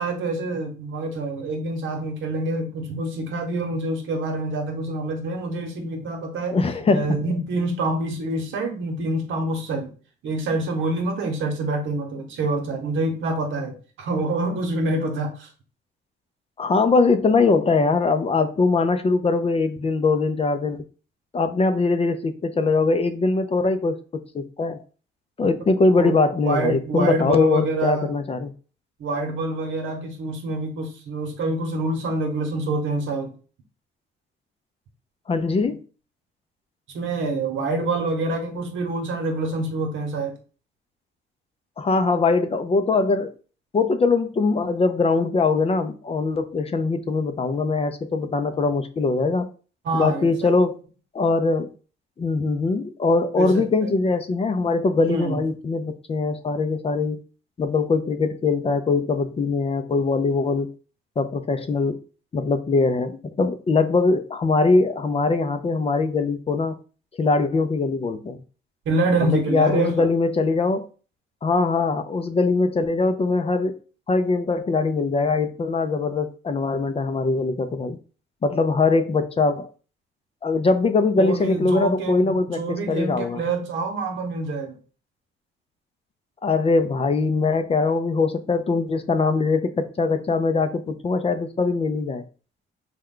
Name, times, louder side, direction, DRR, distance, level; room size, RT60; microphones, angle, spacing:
voice 1, 0.0-6.6 6.9-9.9 10.2-15.5 26.0-26.2 26.4-28.1 29.0-33.3 36.9-40.4 49.8-50.5 53.3-53.9 55.0-55.4 68.9-70.1 81.2-84.8, right 2 dB, 75° right, 1.0 m, -26 dB
voice 2, 6.5-7.2 16.6-20.8 21.3-24.8 25.4-28.5 35.3-35.8 41.8-43.3 43.7-49.5 49.9-50.8 51.1-51.7 52.2-57.2 57.6-60.7 61.2-62.0 62.3-66.8 67.2-68.4 69.2-70.9 71.4-73.8 74.1-78.0 78.4-79.7 80.4-83.4 86.4-92.2, left 3 dB, 30° left, 0.4 m, -22 dB
3.2 x 2.3 x 3.7 m
cardioid pair, 90°, 20 cm